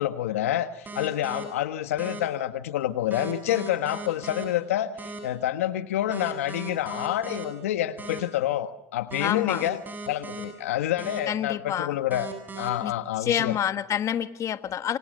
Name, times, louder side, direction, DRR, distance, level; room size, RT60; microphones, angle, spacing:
voice 1, 0.0-4.9 5.2-9.8 10.1-12.3 12.6-13.6, left 12 dB, 90° left, 11 dB, 1.4 m, -28 dB
sound 1, 0.8-1.4 2.0-2.2 3.1-4.4 5.0-5.2 6.1-7.4 8.0-8.2 9.1-10.4 11.0-11.2 12.1-12.7, right 4 dB, 25° right, 8.0 m, -38 dB
voice 2, 9.2-9.6 11.3-12.0 12.8-12.9 13.2-15.0, left 10 dB, 45° left, 12 dB, 1.4 m, -28 dB
27.5 x 25.5 x 6.6 m, 0.86 s
supercardioid pair, 90°, 7 cm